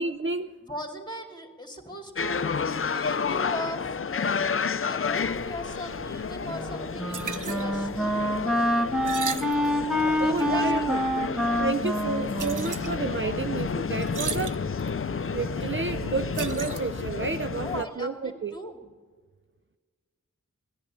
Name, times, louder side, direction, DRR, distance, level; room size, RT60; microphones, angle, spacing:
voice 1, 0.0-0.6 10.2-11.0 11.5-14.6 15.3-18.5, right 4 dB, 40° right, 10 dB, 0.5 m, -31 dB
voice 2, 0.6-4.4 4.9-8.2 10.1-11.5 17.6-18.8, equal, 15° left, 4 dB, 2.4 m, -39 dB
sound 1, 2.2-17.8, left 6 dB, 40° left, 0.5 m, -31 dB
sound 2, 5.2-17.1, right 5 dB, 70° right, 0.7 m, -39 dB
Wind instrument woodwind instrument, 6.5-13.7, equal, ahead, 1.1 m, -27 dB
17.5 x 10.5 x 7.3 m, 1.5 s
wide cardioid pair, 45°, 32 cm